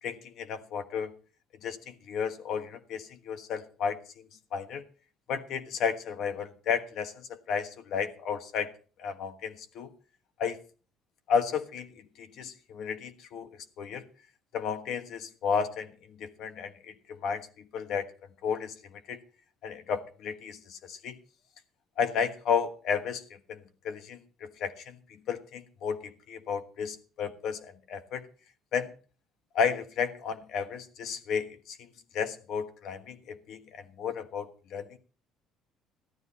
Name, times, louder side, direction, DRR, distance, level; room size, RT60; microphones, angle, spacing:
voice 1, 0.0-1.1 1.6-4.2 4.5-4.8 5.3-8.7 9.0-9.9 10.4-10.6 11.3-13.5 13.8-14.1 14.5-18.1 18.4-19.2 19.6-21.2 22.0-28.2 28.7-28.9 29.5-34.9, left 6 dB, 55° left, 9 dB, 1.4 m, -33 dB
13.5 x 12.0 x 4.2 m, 0.38 s
cardioid pair, 160°, 0 cm